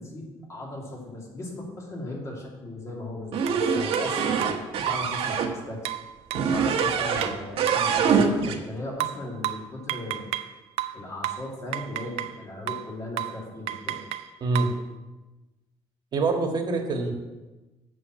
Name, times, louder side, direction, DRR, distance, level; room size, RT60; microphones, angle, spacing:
voice 1, 0.0-4.5 4.8-5.9 6.3-10.3 10.9-14.0, left 1 dB, 30° left, -2 dB, 2.6 m, -37 dB
sound 1, 3.3-5.5 6.3-7.3 7.6-8.6, right 6 dB, 65° right, 1.3 m, -24 dB
sound 2, 3.5-3.6 3.9-4.1 4.4-5.2 5.9-7.9 9.0-10.5 10.8-12.4 12.7-12.9 13.2-13.4 13.7-14.8, right 13 dB, 85° right, 0.5 m, -32 dB
voice 2, 14.4-14.8 16.1-17.1, right 3 dB, 45° right, 2 dB, 1.7 m, -25 dB
7.6 x 6.1 x 7.6 m, 1.1 s
cardioid pair, 135°, 10 cm